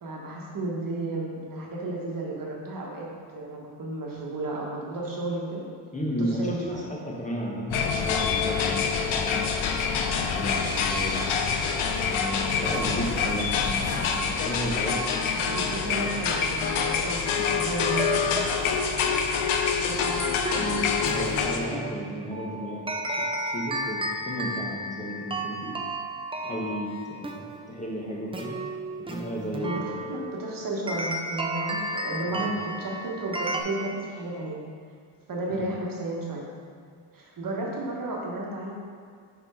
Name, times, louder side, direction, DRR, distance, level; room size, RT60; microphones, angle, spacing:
voice 1, 0.0-3.1 3.3-5.6 6.2-6.8 15.3-18.7 29.6-34.6 35.3-36.5 37.1-38.7, right 2 dB, 45° right, -2 dB, 1.3 m, -33 dB
voice 2, 5.9-8.8 9.1-9.6 10.2-11.4 12.1-15.0 15.9-16.2 17.3-17.6 20.5-22.9 23.4-25.8 26.4-28.6 29.1-30.1 32.3-32.5 35.5-35.6, equal, 15° left, -3 dB, 1.1 m, -33 dB
sound 1, 7.7-21.6, left 6 dB, 85° left, 0.7 m, -26 dB
sound 2, 17.9-33.6, right 2 dB, 15° right, 0.4 m, -34 dB
4.4 x 4.3 x 5.4 m, 2.1 s
cardioid pair, 100°, 47 cm